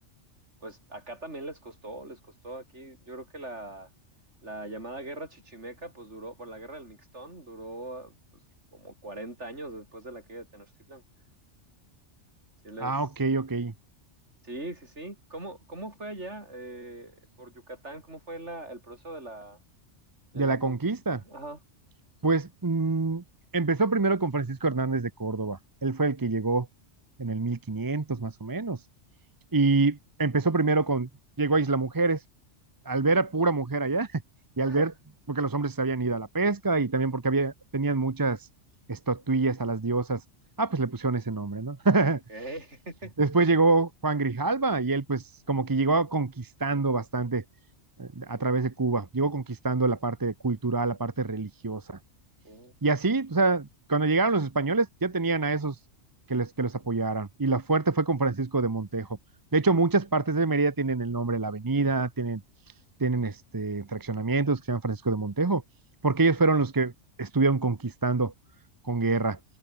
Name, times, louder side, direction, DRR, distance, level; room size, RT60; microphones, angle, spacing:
voice 1, 0.6-3.9 4.4-8.2 8.7-11.0 12.6-12.9 14.4-19.6 20.3-21.6 34.6-34.9 42.3-43.1 52.4-52.7, right 1 dB, 70° right, 7.3 m, -41 dB
voice 2, 12.8-13.7 20.3-21.2 22.2-23.2 23.5-26.7 27.2-28.8 29.5-31.1 31.4-32.2 32.9-34.2 34.6-34.9 35.3-38.5 38.9-40.2 40.6-42.2 43.2-47.4 48.0-52.0 52.8-55.8 56.3-59.1 59.5-62.4 63.0-65.6 66.0-66.9 67.2-68.3 68.8-69.4, right 3 dB, 20° right, 0.6 m, -26 dB
omnidirectional pair, 1.2 m